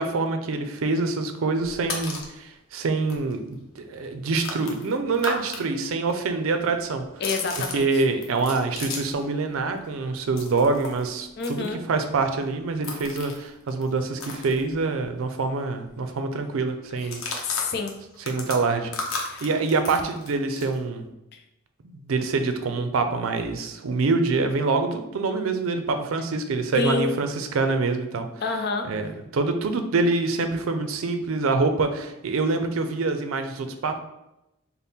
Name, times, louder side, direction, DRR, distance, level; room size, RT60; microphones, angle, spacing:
voice 1, 0.0-7.0 7.7-17.2 18.3-18.9 19.4-21.0 21.8-28.3 28.9-34.0, right 3 dB, 90° right, 7 dB, 0.4 m, -25 dB
sound 1, 1.6-2.4 2.8-2.9 3.1-5.6 5.9-9.3 9.6-15.2 15.5-15.6 15.9-16.2 17.0-20.8, left 3 dB, 85° left, 0.7 m, -36 dB
voice 2, 7.2-7.9 11.4-11.8 17.0-17.1 17.4-18.0 19.3-19.5 21.3-21.4 26.7-27.2 28.4-28.9, left 4 dB, 50° left, 4 dB, 0.4 m, -28 dB
3.5 x 2.1 x 4.1 m, 0.90 s
head